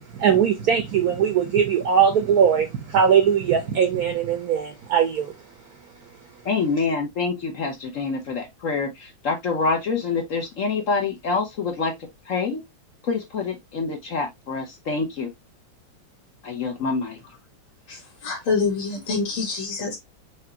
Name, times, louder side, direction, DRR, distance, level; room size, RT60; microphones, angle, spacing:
voice 1, 0.1-5.3, right 7 dB, 60° right, 1.0 m, -20 dB
voice 2, 6.4-11.9 12.3-12.6 13.0-15.3 16.4-17.2, left 4 dB, 50° left, 1.1 m, -26 dB
voice 3, 17.9-20.0, left 4 dB, 80° left, 2.4 m, -26 dB
5.1 x 3.2 x 2.8 m
omnidirectional pair, 2.2 m